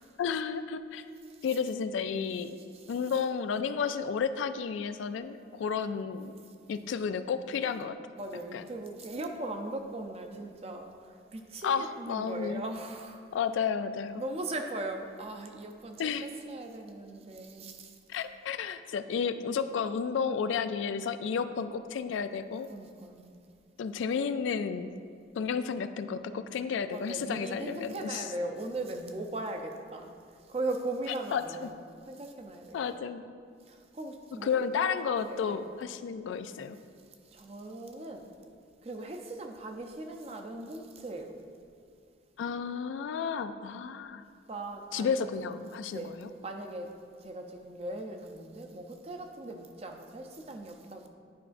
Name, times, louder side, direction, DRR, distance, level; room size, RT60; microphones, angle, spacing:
voice 1, 0.2-1.0 1.4-2.6 2.9-6.3 6.7-7.9 8.5-8.7 11.6-12.6 13.3-14.2 16.0-16.2 18.1-22.7 23.8-24.9 25.4-28.2 31.3-31.7 32.7-33.2 34.4-36.8 42.4-44.2 44.9-46.3, left 6 dB, 85° left, 11 dB, 0.3 m, -32 dB
voice 2, 2.6-2.9 8.2-13.2 14.2-17.9 22.7-23.4 26.9-30.1 30.5-31.8 32.1-32.9 33.7-35.6 37.3-38.2 38.8-41.4 44.5-45.4 45.9-46.2 46.4-46.9 47.2-51.1, right 2 dB, 35° right, 4 dB, 0.5 m, -39 dB
10.0 x 4.8 x 2.5 m, 2.2 s
head